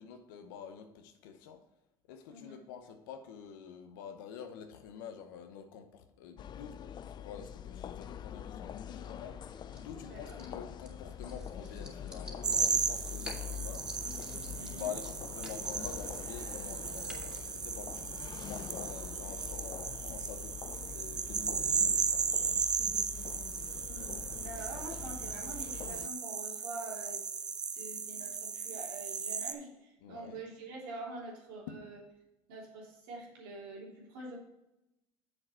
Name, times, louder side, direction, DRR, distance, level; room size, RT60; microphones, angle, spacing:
voice 1, 0.0-1.6 2.1-13.9 14.8-20.6 20.8-22.6 30.0-30.4 31.7-31.8, left 7 dB, 85° left, 6 dB, 0.8 m, -47 dB
sound 1, 6.4-26.1, left 9 dB, 45° left, 0.4 m, -45 dB
sound 2, 8.7-17.4, equal, 10° right, 2.4 m, -52 dB
voice 2, 10.0-10.4 14.5-14.9 23.8-27.2 27.7-32.0 32.5-34.4, right 2 dB, 90° right, -3 dB, 3.1 m, -46 dB
sound 3, 12.4-29.5, right 6 dB, 40° right, 0.8 m, -35 dB
7.5 x 6.5 x 4.4 m, 0.91 s
supercardioid pair, 80°, 11 cm